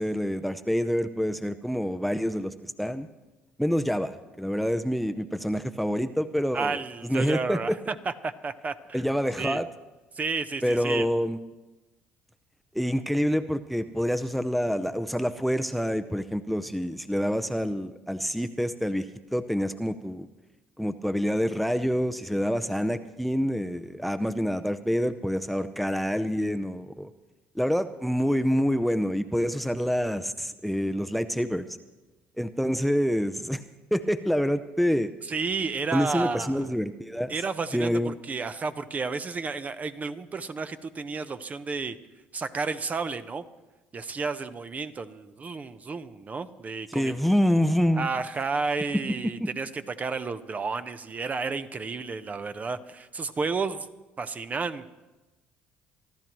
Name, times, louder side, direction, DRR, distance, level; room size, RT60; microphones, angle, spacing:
voice 1, 0.0-3.1 3.6-6.8 7.1-7.8 8.9-9.7 10.6-11.4 12.7-19.1 19.3-20.3 20.8-27.1 27.6-31.6 32.4-33.6 33.9-35.1 35.9-37.3 37.7-38.1 46.9-48.1 49.2-49.5, equal, ahead, 11 dB, 0.6 m, -27 dB
voice 2, 6.5-9.0 9.4-9.6 10.1-11.2 35.2-36.8 37.3-42.0 42.3-43.4 43.9-47.3 48.0-53.9 54.2-54.9, right 4 dB, 35° right, 11 dB, 0.8 m, -32 dB
26.0 x 12.5 x 3.1 m, 1.1 s
hypercardioid pair, 65°, 5 cm